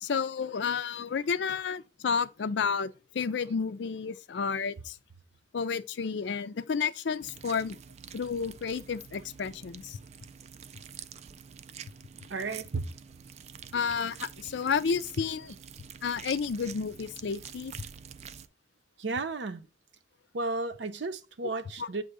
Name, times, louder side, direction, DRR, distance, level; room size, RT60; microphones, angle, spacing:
voice 1, 0.0-5.0 5.5-7.8 8.1-10.0 13.7-15.5 16.0-17.7 21.8-21.9, left 6 dB, 70° left, 0.4 m, -31 dB
sound 1, 7.2-18.5, right 7 dB, 35° right, 0.3 m, -47 dB
voice 2, 12.3-12.9 19.0-19.6 20.3-22.0, right 3 dB, 75° right, 0.7 m, -33 dB
7.5 x 2.6 x 4.7 m
head